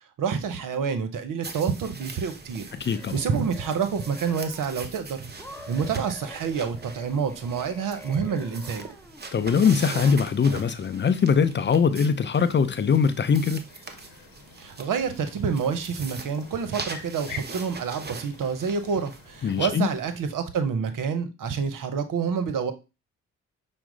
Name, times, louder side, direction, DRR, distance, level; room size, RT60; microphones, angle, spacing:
voice 1, 0.2-2.7 3.1-5.3 5.7-8.9 14.6-22.7, right 6 dB, 55° right, 0.8 m, -28 dB
sound 1, 1.4-20.4, right 4 dB, 25° right, 0.8 m, -42 dB
voice 2, 2.7-3.2 9.3-13.7 19.4-19.9, left 6 dB, 30° left, 0.5 m, -22 dB
sound 2, 2.7-4.9 5.4-9.3, left 2 dB, 5° left, 0.8 m, -47 dB
sound 3, 13.6-19.9, left 6 dB, 65° left, 0.9 m, -47 dB
5.8 x 2.0 x 3.8 m
hypercardioid pair, 45°, 38 cm